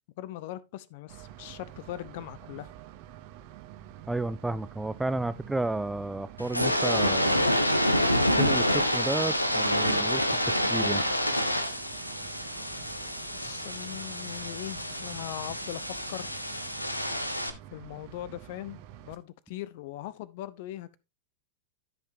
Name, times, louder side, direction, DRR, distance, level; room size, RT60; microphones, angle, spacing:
voice 1, 0.2-2.7 13.4-16.3 17.7-21.0, left 14 dB, 50° left, 0.6 m, -40 dB
sound 1, 1.1-19.2, right 12 dB, 45° right, 0.8 m, -48 dB
voice 2, 4.1-7.5 8.4-11.0, right 2 dB, 5° right, 0.4 m, -32 dB
sound 2, 6.4-17.5, equal, 90° left, 0.8 m, -28 dB
13.0 x 5.6 x 2.7 m
figure-of-eight pair, 90°, 0 cm